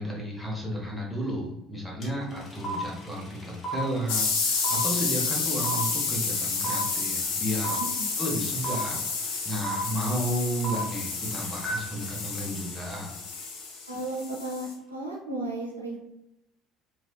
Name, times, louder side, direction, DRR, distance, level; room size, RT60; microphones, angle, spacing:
voice 1, 0.0-7.8 8.2-13.1, equal, ahead, -3 dB, 0.9 m, -32 dB
sound 1, 2.0-2.1 2.3-13.5, right 2 dB, 30° left, 0.8 m, -36 dB
sound 2, 4.1-14.7, left 4 dB, 65° left, 0.5 m, -30 dB
voice 2, 13.9-16.0, right 2 dB, 85° right, -3 dB, 0.4 m, -34 dB
3.1 x 2.0 x 2.2 m, 0.86 s
figure-of-eight pair, 60°, 0 cm